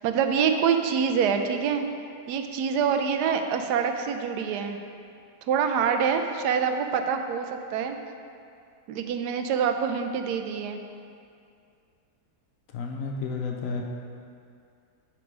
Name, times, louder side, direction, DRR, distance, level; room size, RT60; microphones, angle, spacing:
voice 1, 0.0-1.8 2.3-4.8 5.5-8.0 8.9-10.8, right 7 dB, 85° right, 6 dB, 1.1 m, -25 dB
voice 2, 12.7-13.8, left 4 dB, 65° left, 1 dB, 0.9 m, -31 dB
9.3 x 3.7 x 5.0 m, 2.4 s
omnidirectional pair, 1.7 m